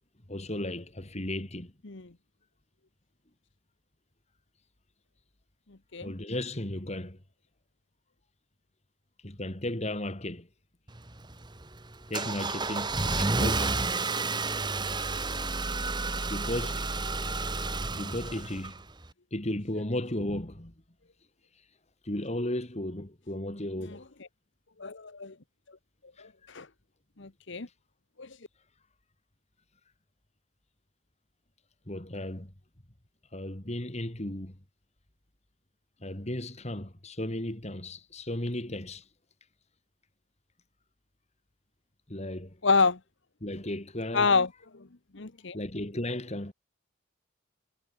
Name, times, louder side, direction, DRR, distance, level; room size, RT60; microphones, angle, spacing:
voice 1, 0.3-1.7 6.0-7.2 9.2-10.5 12.1-13.9 16.3-16.9 17.9-18.8 19.3-20.7 22.0-24.0 31.9-32.5 33.3-34.6 36.0-39.0 42.1-42.6 43.4-44.3 45.5-46.5, left 1 dB, 30° left, 2.5 m, -35 dB
Car / Engine starting, 10.9-19.1, right 3 dB, 20° right, 1.5 m, -31 dB
voice 2, 24.8-25.3 26.2-26.7 27.2-27.7 28.2-28.4 42.6-43.0 44.1-44.5 44.7-44.9 45.1-45.6, left 4 dB, 60° left, 1.1 m, -27 dB
head